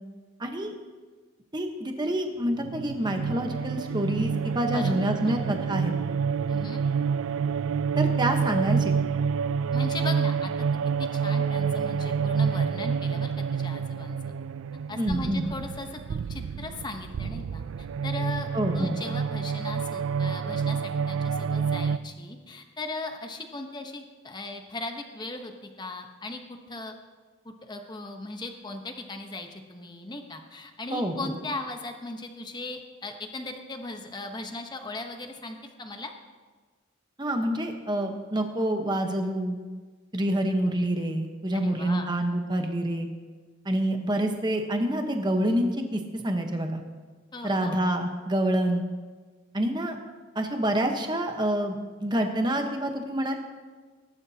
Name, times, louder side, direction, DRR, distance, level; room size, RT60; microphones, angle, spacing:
voice 1, 0.4-0.7 1.5-5.9 8.0-9.0 15.0-15.5 18.5-19.0 30.9-31.3 37.2-39.6 40.1-43.1 43.6-46.8 47.4-48.8 49.5-50.0 50.3-53.4, right 1 dB, 20° right, 4 dB, 1.1 m, -27 dB
sound 1, 2.6-22.0, right 6 dB, 80° right, 0.4 m, -28 dB
voice 2, 4.7-5.4 6.5-6.8 9.7-10.7 11.1-14.3 14.9-18.5 18.7-26.4 26.7-26.9 27.4-36.1 41.5-42.1 47.3-47.7, left 2 dB, 20° left, 5 dB, 1.0 m, -38 dB
20.5 x 11.5 x 2.8 m, 1.4 s
head